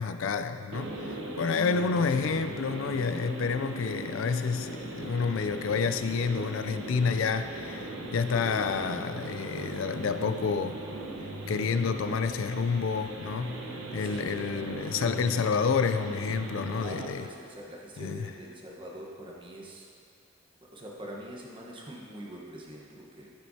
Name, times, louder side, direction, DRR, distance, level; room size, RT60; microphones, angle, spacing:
voice 1, 0.0-10.8 11.5-13.6 13.9-17.3 18.0-18.3, left 5 dB, 80° left, 10 dB, 0.4 m, -29 dB
sound 1, 0.7-17.1, right 2 dB, 85° right, 1.0 m, -39 dB
voice 2, 14.0-14.4 16.8-19.9 20.6-23.3, right 1 dB, 25° right, -2 dB, 1.1 m, -44 dB
13.5 x 7.5 x 2.8 m, 2.3 s
head